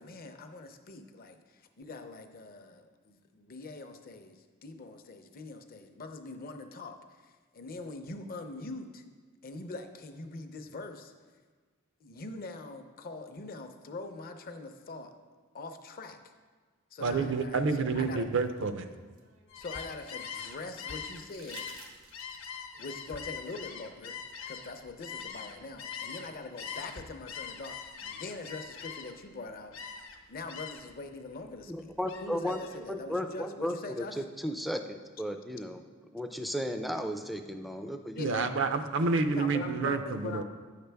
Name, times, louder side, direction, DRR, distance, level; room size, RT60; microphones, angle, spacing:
voice 1, 0.0-6.9 7.2-9.0 9.4-11.1 12.0-15.1 15.5-16.2 16.9-18.3 19.5-21.6 22.7-24.2 24.5-29.9 30.3-31.9 32.2-34.2 38.1-38.5 39.2-40.4, left 3 dB, 45° left, 6 dB, 0.6 m, -43 dB
voice 2, 17.0-18.9 38.2-40.4, right 4 dB, 60° right, 9 dB, 0.5 m, -29 dB
sound 1, 17.9-20.2 21.1-22.6 24.3-24.4, right 4 dB, 85° right, 1.0 m, -54 dB
Gull seagull, 19.5-26.3 26.6-29.3 29.7-30.2 30.5-31.0 31.3-32.8, left 6 dB, 65° left, 0.9 m, -42 dB
voice 3, 31.7-35.8 36.1-38.3, equal, ahead, 6 dB, 0.4 m, -35 dB
9.2 x 6.6 x 3.4 m, 1.4 s
head